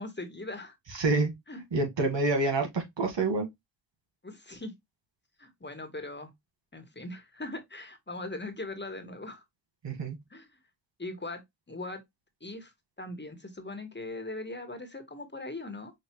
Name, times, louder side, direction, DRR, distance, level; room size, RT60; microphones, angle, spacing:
voice 1, 0.0-0.8 1.5-1.6 2.4-2.5 4.2-4.7 5.4-6.3 6.7-9.4 10.3-10.6 11.0-11.4 11.7-12.0 12.4-12.7 13.0-15.9, left 2 dB, 25° left, 1.4 m, -40 dB
voice 2, 0.9-1.3 1.7-3.5 9.8-10.2, right 3 dB, 80° right, 1.6 m, -27 dB
5.8 x 2.7 x 3.0 m
cardioid pair, 40°, 43 cm